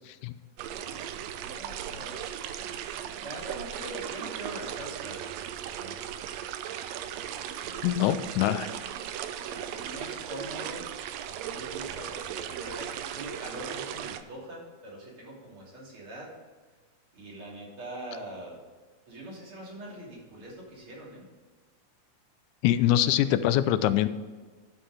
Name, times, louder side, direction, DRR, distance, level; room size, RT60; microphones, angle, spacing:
sound 1, 0.6-14.2, right 10 dB, 80° right, 1.6 m, -37 dB
voice 1, 0.7-2.2 3.2-5.2 5.7-6.1 7.3-8.3 9.4-10.9 11.4-16.3 17.1-18.6 19.1-21.3 22.9-23.3, right 1 dB, 45° right, -4 dB, 3.7 m, -43 dB
voice 2, 7.8-8.7 22.6-24.1, left 12 dB, 85° left, 13 dB, 2.0 m, -24 dB
11.5 x 5.7 x 4.9 m, 1.4 s
omnidirectional pair, 3.4 m